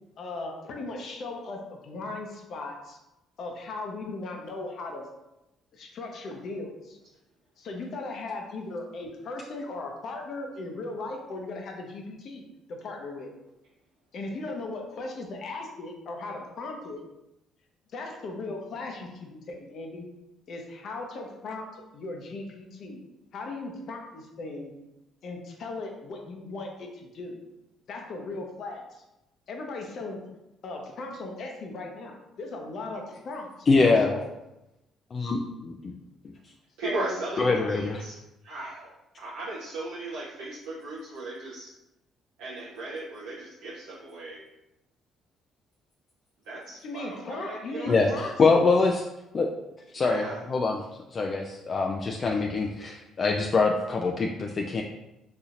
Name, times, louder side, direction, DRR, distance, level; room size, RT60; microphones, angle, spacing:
voice 1, 0.2-3.0 3.4-5.0 5.7-7.0 7.6-12.4 12.7-13.3 14.1-17.0 17.9-20.1 20.5-23.0 23.3-24.7 25.2-27.4 27.9-29.0 29.5-30.2 30.6-34.3 36.8-37.7 46.8-48.3, left 2 dB, 60° left, 2 dB, 0.7 m, -37 dB
voice 2, 33.7-34.2 35.1-35.9 37.4-38.0 47.9-49.0 49.3-49.5 49.9-50.8 51.1-54.8, left 3 dB, 45° left, 1 dB, 0.3 m, -24 dB
voice 3, 36.8-38.2 38.4-38.9 39.2-41.7 42.4-44.4 46.4-48.1 49.9-50.4, right 2 dB, 85° right, -6 dB, 0.6 m, -37 dB
4.1 x 2.8 x 2.5 m, 0.92 s
supercardioid pair, 70°, 0 cm